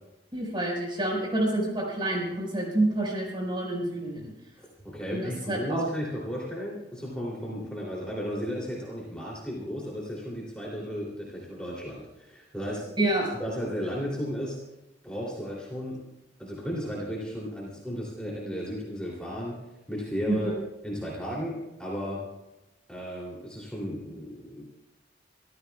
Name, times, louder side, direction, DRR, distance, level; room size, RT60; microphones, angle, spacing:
voice 1, 0.3-4.3 5.1-5.9 13.0-13.3 20.3-20.6, right 1 dB, 25° right, -1 dB, 5.0 m, -28 dB
voice 2, 4.6-12.9 13.4-14.6 15.0-16.0 16.4-19.6 19.9-20.5 20.8-22.2 22.9-24.6, equal, 5° left, -5 dB, 3.0 m, -34 dB
25.0 x 14.5 x 2.3 m, 0.95 s
head